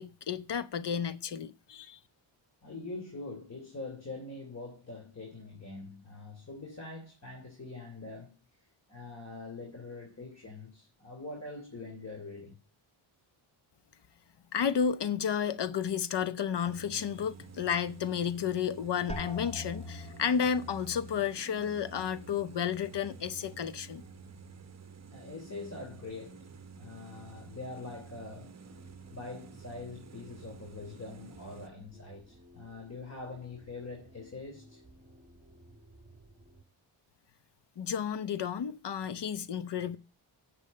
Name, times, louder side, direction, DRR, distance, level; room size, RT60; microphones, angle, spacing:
voice 1, 0.0-2.0 14.5-24.0 37.8-40.0, left 7 dB, 55° left, 0.9 m, -32 dB
voice 2, 2.6-12.6 25.1-26.5 26.7-28.6 29.1-34.8, left 3 dB, 30° left, 3.2 m, -44 dB
sound 1, 16.6-31.7, right 5 dB, 30° right, 0.9 m, -51 dB
sound 2, 19.1-24.7 25.0-25.7 26.3-26.7, left 2 dB, 10° left, 1.6 m, -47 dB
sound 3, 28.6-36.6, right 1 dB, 15° right, 1.9 m, -58 dB
8.4 x 6.5 x 7.5 m
cardioid pair, 80°, 50 cm